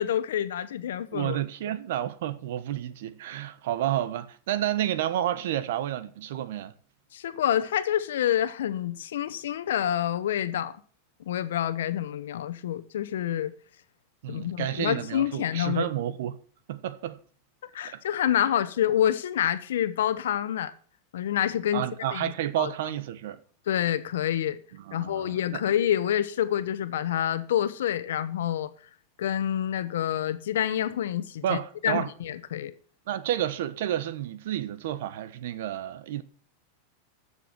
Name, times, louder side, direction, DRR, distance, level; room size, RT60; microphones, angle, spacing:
voice 1, 0.0-1.4 7.1-10.7 11.3-13.5 14.3-15.9 17.7-20.7 21.1-21.8 22.1-22.3 22.6-22.7 23.7-24.6 24.9-28.7 29.2-32.7, left 10 dB, 85° left, 1.1 m, -27 dB
voice 2, 1.1-6.7 14.2-16.4 16.7-17.2 17.9-18.0 21.7-23.4 24.8-25.6 31.4-32.1 33.1-36.2, right 12 dB, 70° right, 1.1 m, -30 dB
13.5 x 7.0 x 6.1 m
supercardioid pair, 140°, 0 cm